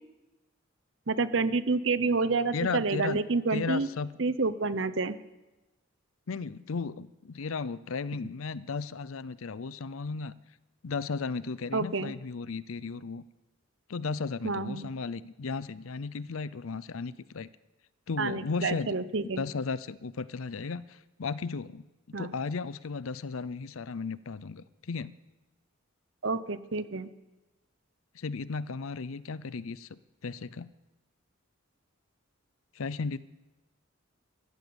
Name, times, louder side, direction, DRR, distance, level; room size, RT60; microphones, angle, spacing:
voice 1, 1.1-3.9 4.2-5.1 11.7-12.1 14.4-14.9 18.2-19.4 22.1-22.3 26.2-27.1, right 3 dB, 60° right, 14 dB, 0.8 m, -29 dB
voice 2, 2.5-3.2 3.5-4.1 6.3-10.4 10.8-13.2 13.9-17.5 18.1-19.0 19.2-25.1 28.1-30.7 32.7-33.2, left 4 dB, 80° left, 18 dB, 0.6 m, -35 dB
14.5 x 14.0 x 7.0 m, 1.1 s
head